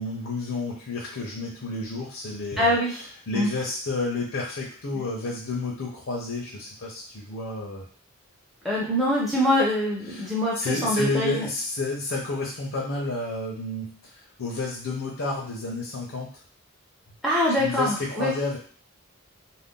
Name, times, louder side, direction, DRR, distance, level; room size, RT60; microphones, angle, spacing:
voice 1, 0.0-7.9 9.5-9.6 10.1-16.4 17.5-18.6, left 3 dB, 65° left, -3 dB, 0.7 m, -31 dB
voice 2, 2.6-3.0 3.3-3.5 8.6-11.5 17.2-18.3, left 1 dB, ahead, -6 dB, 0.6 m, -24 dB
2.5 x 2.2 x 3.6 m, 0.44 s
head